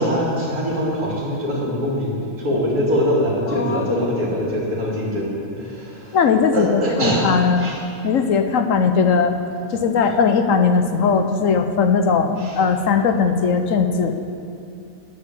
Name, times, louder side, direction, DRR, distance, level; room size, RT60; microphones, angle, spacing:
voice 1, 0.0-6.2 6.5-7.3 7.6-7.8 9.7-10.2 12.4-12.6, equal, 85° right, -4 dB, 3.6 m, -23 dB
voice 2, 3.5-4.0 4.4-4.5 6.1-7.7 8.0-9.4 9.7-14.3, left 5 dB, 65° left, 7 dB, 1.1 m, -19 dB
10.5 x 9.5 x 8.2 m, 2.6 s
omnidirectional pair, 1.5 m